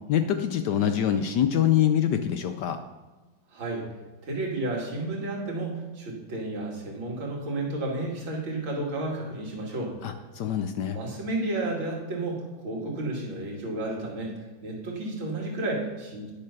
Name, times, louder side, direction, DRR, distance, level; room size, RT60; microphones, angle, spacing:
voice 1, 0.1-2.8 10.0-11.0, left 10 dB, 70° left, 8 dB, 1.1 m, -25 dB
voice 2, 3.5-3.8 4.2-9.9 10.9-14.4 14.6-16.3, right 2 dB, 75° right, -2 dB, 3.0 m, -32 dB
10.0 x 6.7 x 5.8 m, 1.2 s
omnidirectional pair, 2.2 m